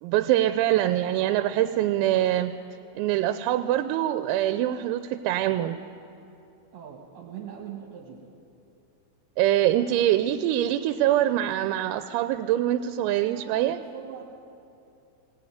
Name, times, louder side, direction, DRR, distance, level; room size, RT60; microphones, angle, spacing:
voice 1, 0.0-2.6 3.0-5.8 9.4-13.8, right 13 dB, 90° right, 10 dB, 3.4 m, -24 dB
voice 2, 6.7-8.2 9.9-10.0 13.0-14.2, right 9 dB, 65° right, -1 dB, 3.7 m, -42 dB
20.5 x 19.0 x 9.5 m, 2.7 s
omnidirectional pair, 6.0 m